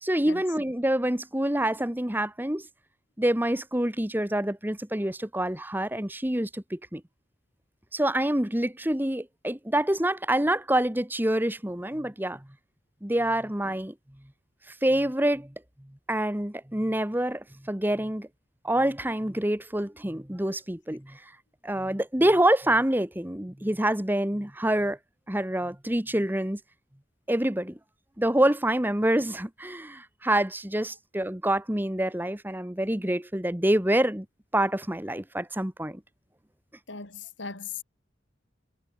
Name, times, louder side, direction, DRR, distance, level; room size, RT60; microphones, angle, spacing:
voice 1, 0.0-2.7 3.2-7.0 7.9-12.4 13.0-13.9 14.8-15.5 16.1-18.3 18.6-21.2 21.6-25.0 25.3-26.6 27.3-27.8 28.2-34.2 34.5-36.0, right 1 dB, 10° right, 1.3 m, -26 dB
voice 2, 36.9-37.8, left 5 dB, 75° left, 3.6 m, -38 dB
head